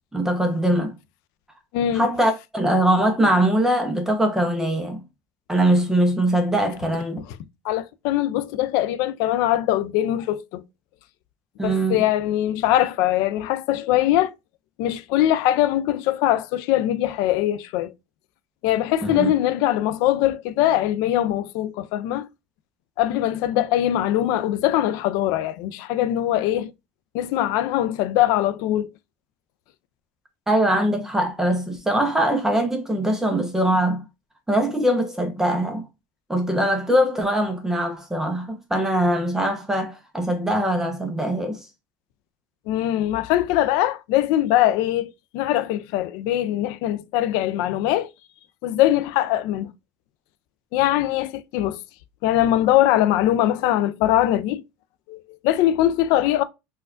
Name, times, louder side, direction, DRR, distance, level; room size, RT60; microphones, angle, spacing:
voice 1, 0.1-1.0 1.9-5.0 5.5-7.2 11.6-12.0 19.0-19.3 30.5-34.0 34.5-35.9 36.3-41.7, right 1 dB, 5° right, 0.5 m, -22 dB
voice 2, 1.7-2.1 7.6-10.6 11.6-14.3 14.8-17.9 18.6-22.3 23.0-26.7 27.1-28.9 42.7-48.1 48.6-49.7 50.7-51.8 52.2-54.6 55.1-56.4, left 13 dB, 75° left, 0.3 m, -22 dB
4.3 x 2.2 x 2.3 m
supercardioid pair, 120°, 7 cm